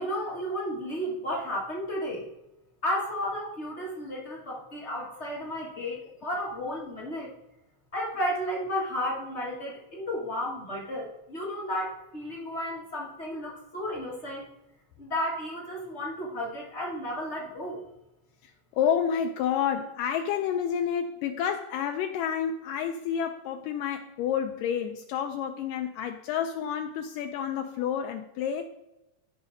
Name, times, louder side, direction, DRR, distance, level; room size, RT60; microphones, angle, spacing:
voice 1, 0.0-2.2 2.8-7.3 7.9-14.5 15.0-17.8, equal, 45° left, 0.8 m, -33 dB
voice 2, 18.4-28.7, left 8 dB, 90° left, 1.9 m, -29 dB
15.0 x 5.9 x 2.7 m
omnidirectional pair, 4.4 m